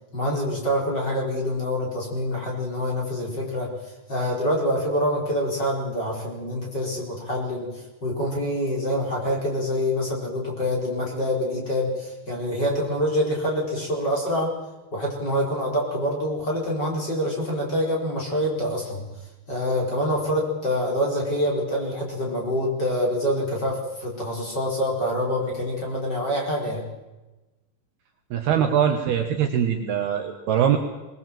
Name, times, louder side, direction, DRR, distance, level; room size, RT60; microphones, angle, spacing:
voice 1, 0.1-3.7 4.1-7.7 8.0-14.5 14.9-19.0 19.5-26.8, equal, 20° left, -2 dB, 4.8 m, -26 dB
voice 2, 28.3-30.8, right 9 dB, 65° right, 4 dB, 2.9 m, -22 dB
22.0 x 20.5 x 7.6 m, 1.1 s
omnidirectional pair, 5.5 m